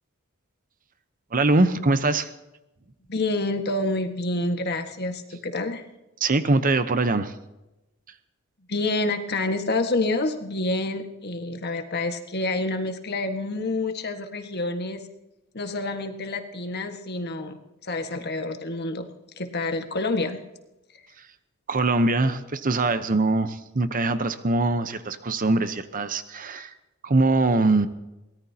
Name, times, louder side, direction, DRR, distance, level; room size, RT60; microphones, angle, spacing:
voice 1, 1.3-2.3 6.2-7.3 21.2-21.3 21.7-26.7 27.0-27.9, right 2 dB, 40° right, 11 dB, 0.8 m, -22 dB
voice 2, 3.1-5.9 8.7-15.0 15.5-19.1 19.4-20.4, left 2 dB, 50° left, 6 dB, 1.6 m, -28 dB
23.0 x 18.0 x 2.9 m, 0.97 s
head